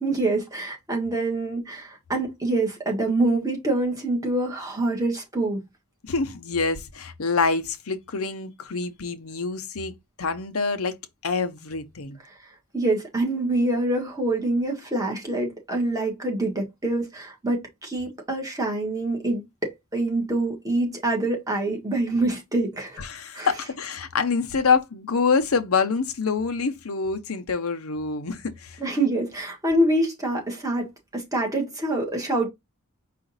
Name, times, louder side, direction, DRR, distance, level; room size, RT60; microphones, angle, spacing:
voice 1, 0.0-5.6 12.7-23.0 23.3-23.5 28.8-32.5, right 2 dB, 15° right, 1.4 m, -25 dB
voice 2, 6.0-11.0 11.2-12.2 23.0-28.8, left 4 dB, 85° left, 0.8 m, -26 dB
4.9 x 2.4 x 4.0 m
head